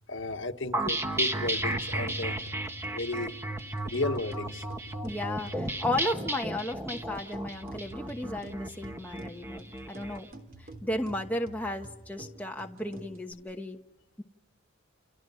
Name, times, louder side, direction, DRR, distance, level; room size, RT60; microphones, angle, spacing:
voice 1, 0.1-2.4 2.9-3.4 3.8-4.7 9.1-9.2 9.7-9.8, left 2 dB, 65° left, 6 dB, 1.5 m, -34 dB
sound 1, 0.7-10.2, right 1 dB, 15° right, 1.5 m, -33 dB
sound 2, 1.3-13.3, right 2 dB, 45° right, 3.4 m, -48 dB
voice 2, 5.0-10.3 10.6-13.8 14.2-14.3, left 1 dB, 10° left, 2 dB, 1.1 m, -34 dB
29.5 x 29.5 x 5.7 m, 1.0 s
head